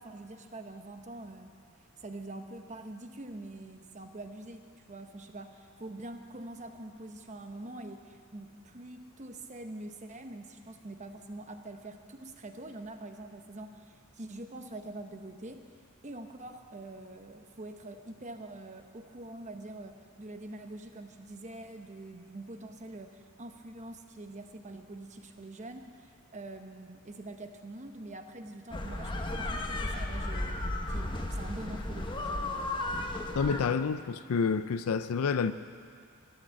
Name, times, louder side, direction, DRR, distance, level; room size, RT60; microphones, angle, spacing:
voice 1, 0.0-1.6 2.0-15.6 16.0-32.5, right 2 dB, 35° right, 6 dB, 0.9 m, -45 dB
sound 1, 28.7-33.7, left 1 dB, 20° left, 1.0 m, -34 dB
voice 2, 33.4-35.5, left 5 dB, 90° left, 12 dB, 0.5 m, -28 dB
14.5 x 10.5 x 7.7 m, 2.2 s
head